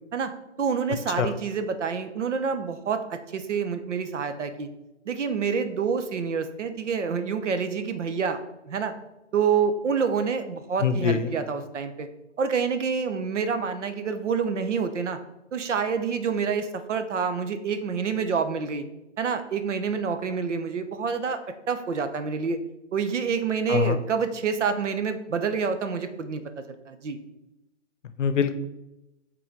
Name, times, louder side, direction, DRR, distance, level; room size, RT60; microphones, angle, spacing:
voice 1, 0.6-4.7 5.1-8.4 8.6-8.9 9.3-12.1 12.4-15.2 15.5-18.8 19.2-21.4 21.7-22.6 22.9-26.4 26.9-27.2, right 6 dB, 70° right, 9 dB, 0.9 m, -27 dB
voice 2, 10.8-11.3 23.7-24.0 28.2-28.6, left 7 dB, 70° left, 11 dB, 0.7 m, -24 dB
6.0 x 3.9 x 4.6 m, 0.92 s
hypercardioid pair, 160°, 38 cm